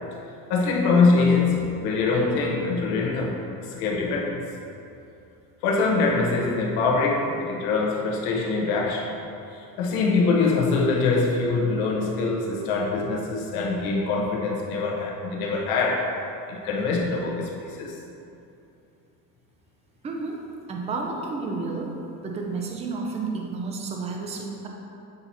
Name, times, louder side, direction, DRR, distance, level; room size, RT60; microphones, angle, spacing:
voice 1, 0.5-3.4 3.8-4.4 5.6-9.1 9.8-16.1 16.5-17.5 17.8-18.0, left 4 dB, 70° left, -1 dB, 1.1 m, -23 dB
voice 2, 20.0-20.4 20.7-21.9 22.2-24.7, right 4 dB, 15° right, 0 dB, 0.4 m, -31 dB
8.0 x 2.9 x 4.0 m, 2.7 s
cardioid pair, 145°, 40 cm